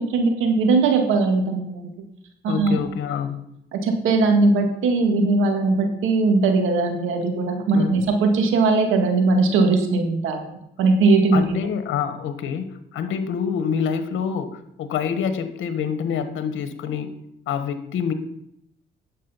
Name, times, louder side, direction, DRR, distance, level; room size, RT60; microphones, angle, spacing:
voice 1, 0.1-1.9 2.4-2.8 3.7-10.4 10.8-11.6, right 3 dB, 90° right, 5 dB, 1.8 m, -19 dB
voice 2, 2.5-3.4 7.7-8.0 11.3-14.5 14.8-17.1 17.5-18.1, left 7 dB, 80° left, 10 dB, 1.3 m, -26 dB
9.6 x 7.6 x 5.6 m, 0.76 s
cardioid pair, 90°, 20 cm